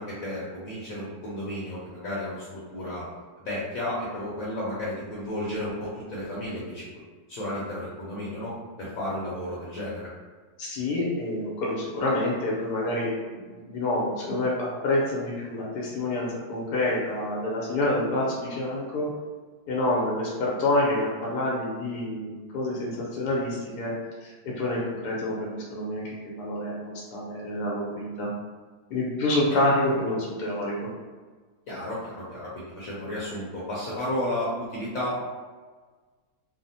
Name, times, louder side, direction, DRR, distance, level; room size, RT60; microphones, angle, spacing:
voice 1, 0.0-3.1 3.4-6.8 7.3-10.1 31.7-35.2, left 1 dB, 65° left, -7 dB, 1.1 m, -33 dB
voice 2, 10.6-19.1 19.7-23.9 24.2-28.3 28.9-30.9, left 1 dB, 85° left, -4 dB, 1.2 m, -28 dB
3.2 x 2.0 x 2.7 m, 1.4 s
omnidirectional pair, 1.7 m